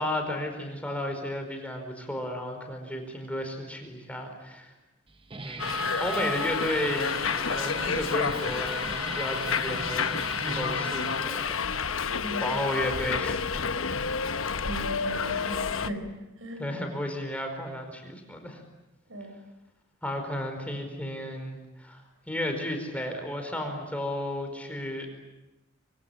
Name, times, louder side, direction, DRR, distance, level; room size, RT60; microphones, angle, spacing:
voice 1, 0.0-4.7 5.4-7.1 7.4-10.1 10.4-12.1 12.3-13.4 16.6-18.6 20.0-22.0 22.3-25.1, left 1 dB, 5° left, 4 dB, 4.9 m, -33 dB
Guitar, 5.1-11.7, right 3 dB, 25° right, 1.0 m, -40 dB
Subway metro underground, 5.6-15.9, left 5 dB, 80° left, 1.0 m, -30 dB
voice 2, 12.0-12.5 14.5-16.1 16.4-16.7 19.1-19.4, right 1 dB, 80° right, 7 dB, 5.9 m, -38 dB
25.5 x 25.0 x 8.8 m, 0.96 s
head